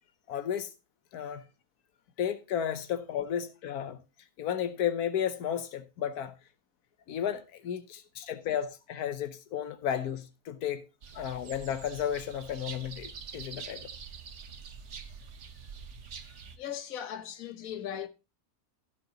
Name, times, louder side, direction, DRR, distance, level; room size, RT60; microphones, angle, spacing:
voice 1, 0.3-0.7 1.1-1.4 2.2-4.0 4.4-6.3 7.1-10.8 11.1-13.8, left 9 dB, 90° left, 1.3 m, -33 dB
sound 1, 11.0-16.6, right 6 dB, 55° right, 1.3 m, -45 dB
voice 2, 16.3-18.1, left 9 dB, 65° left, 1.4 m, -39 dB
15.5 x 6.8 x 2.9 m
omnidirectional pair, 1.6 m